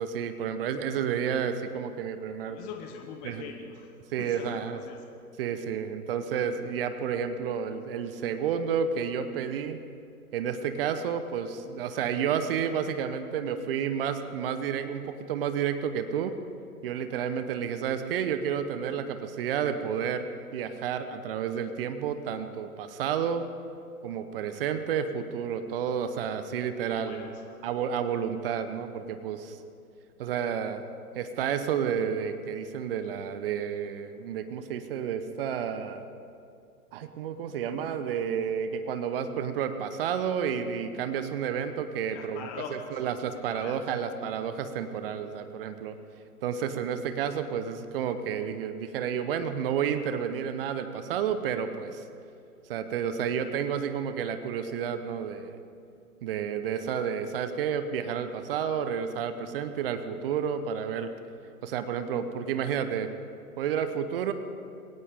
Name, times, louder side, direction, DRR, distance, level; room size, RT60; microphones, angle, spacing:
voice 1, 0.0-2.6 3.2-3.5 4.1-4.8 5.4-9.8 10.3-16.3 16.8-23.4 24.0-27.3 27.6-29.6 30.2-30.8 31.1-36.0 36.9-42.5 43.0-46.0 46.4-52.0 52.7-55.6 56.2-61.1 61.6-63.1 63.6-64.3, right 7 dB, 40° right, 10 dB, 1.1 m, -31 dB
voice 2, 2.4-3.9 4.2-5.0 26.4-27.6 42.1-43.0 43.3-43.8, left 6 dB, 20° left, 2 dB, 1.0 m, -43 dB
20.5 x 18.0 x 3.8 m, 2.5 s
figure-of-eight pair, 130°, 45 cm